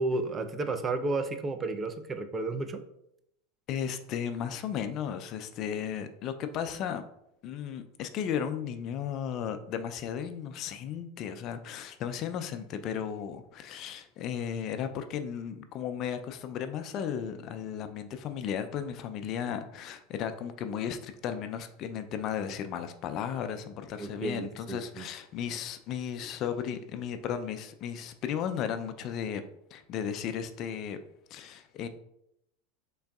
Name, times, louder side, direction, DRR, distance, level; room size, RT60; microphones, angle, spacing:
voice 1, 0.0-2.8 24.0-25.1, right 3 dB, 25° right, 8 dB, 0.4 m, -32 dB
voice 2, 3.7-7.0 7.4-29.4 29.7-31.0 31.3-31.9, left 8 dB, 45° left, 9 dB, 0.3 m, -35 dB
3.8 x 3.5 x 2.3 m, 0.79 s
hypercardioid pair, 100°, 0 cm